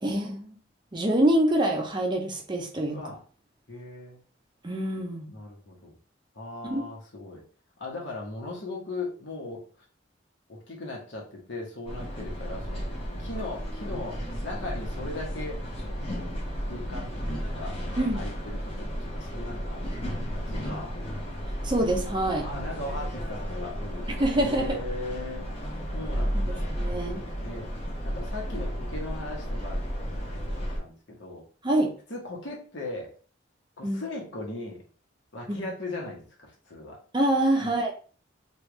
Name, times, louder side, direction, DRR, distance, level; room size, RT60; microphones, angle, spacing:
voice 1, 0.0-0.5 0.9-3.0 4.6-5.3 6.6-6.9 18.0-18.3 21.6-22.5 24.2-24.8 26.8-27.2 31.6-31.9 33.8-34.0 35.5-35.6 37.1-37.9, right 1 dB, 25° right, 2 dB, 0.5 m, -25 dB
voice 2, 2.9-3.2 3.7-4.2 5.3-6.0 6.3-7.4 7.8-9.6 10.5-16.3 16.6-17.8 18.1-19.9 20.2-21.0 22.4-24.1 24.3-26.7 27.4-27.7 28.0-31.4 32.1-33.1 33.8-34.8 35.3-37.0 37.6-37.7, left 2 dB, 70° left, -1 dB, 1.1 m, -38 dB
sound 1, 11.9-30.8, equal, 30° left, 0.9 m, -33 dB
3.3 x 2.4 x 3.1 m, 0.40 s
head